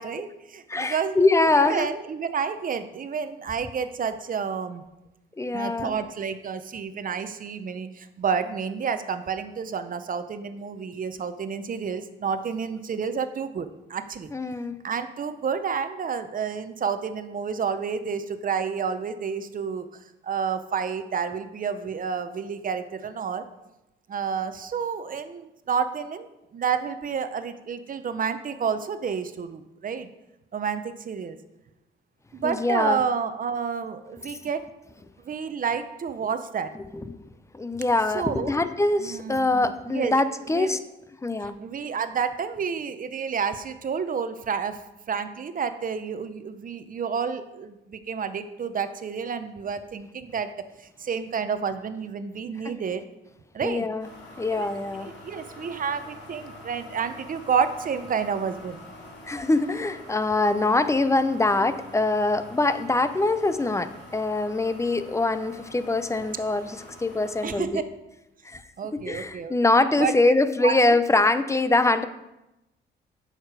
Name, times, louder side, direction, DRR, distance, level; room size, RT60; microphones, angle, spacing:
voice 1, 0.0-1.2 1.6-4.8 5.5-14.3 14.8-19.9 20.2-23.4 24.1-30.1 30.5-31.4 32.3-34.6 35.2-36.7 38.1-38.5 39.0-40.2 40.5-40.8 41.4-44.8 45.1-50.5 50.8-53.0 53.5-53.9 54.5-54.8 55.2-58.8 67.4-67.8 68.8-69.5 70.0-70.3 70.6-70.8, right 6 dB, 45° right, 10 dB, 0.8 m, -30 dB
voice 2, 0.7-1.9 5.4-6.0 14.3-14.8 32.4-33.0 36.9-37.2 37.5-40.8 41.2-41.6 52.6-52.7 53.6-54.1 54.4-55.1 59.3-67.8 68.4-68.6 68.9-72.1, left 2 dB, 15° left, 12 dB, 0.6 m, -23 dB
sound 1, 54.0-67.6, left 1 dB, 60° left, 3.0 m, -45 dB
8.7 x 6.7 x 4.9 m, 0.94 s
cardioid pair, 90°, 20 cm